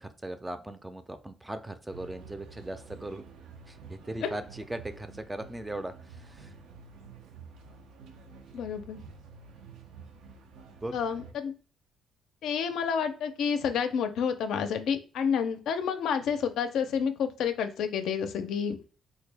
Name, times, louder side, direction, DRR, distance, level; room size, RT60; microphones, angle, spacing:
voice 1, 0.0-3.2 3.7-6.5 10.6-10.9, right 1 dB, 15° right, 10 dB, 0.4 m, -39 dB
sound 1, 1.9-11.3, right 5 dB, 85° right, 0.4 m, -49 dB
voice 2, 8.5-9.0 10.9-11.5 12.4-18.8, left 7 dB, 80° left, 8 dB, 0.4 m, -29 dB
3.6 x 2.1 x 3.2 m, 0.37 s
cardioid pair, 90°, 0 cm